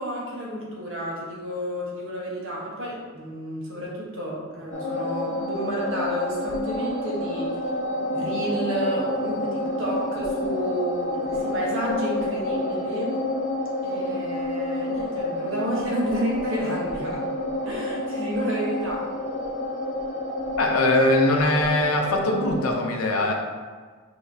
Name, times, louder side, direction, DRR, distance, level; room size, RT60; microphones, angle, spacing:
voice 1, 0.0-7.5 8.1-13.2 13.8-17.3 17.6-19.1, equal, 65° right, -4 dB, 1.2 m, -31 dB
sound 1, 4.7-22.7, left 1 dB, 35° left, 0.7 m, -29 dB
voice 2, 20.6-23.3, left 1 dB, 85° left, 3 dB, 0.6 m, -21 dB
5.8 x 2.9 x 2.7 m, 1.5 s
head